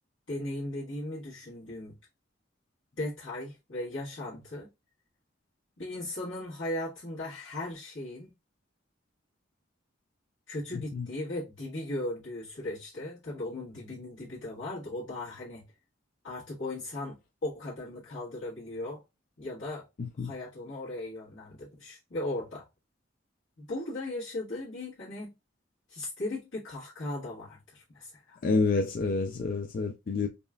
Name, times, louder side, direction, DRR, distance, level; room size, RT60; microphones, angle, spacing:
voice 1, 0.3-1.9 3.0-4.7 5.8-8.3 10.5-15.6 16.2-19.0 19.4-19.9 20.2-22.6 23.6-25.3 25.9-28.4, left 1 dB, 70° left, 1.5 m, -37 dB
voice 2, 10.7-11.1 20.0-20.3 28.4-30.3, left 4 dB, 45° left, 0.3 m, -28 dB
5.1 x 2.4 x 2.2 m
head